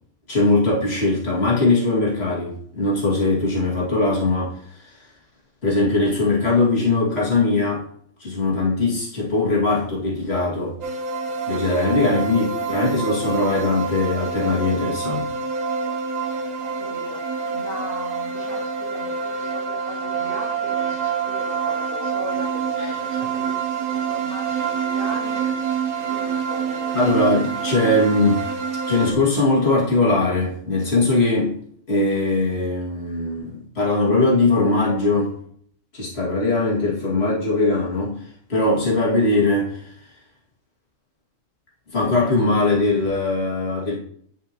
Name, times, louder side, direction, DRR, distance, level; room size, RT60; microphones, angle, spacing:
voice 1, 0.3-5.0 5.6-7.8 8.2-10.8 11.5-15.3 26.9-28.4 28.9-31.6 31.9-35.3 35.9-38.2 38.5-39.9 41.9-44.0, left 2 dB, 50° left, -6 dB, 2.5 m, -20 dB
sound 1, 10.8-29.1, right 6 dB, 75° right, 1.2 m, -27 dB
voice 2, 12.3-12.7 16.6-27.3 27.7-27.9, equal, 70° left, -5 dB, 2.3 m, -38 dB
10.0 x 5.4 x 3.0 m, 0.64 s
omnidirectional pair, 1.4 m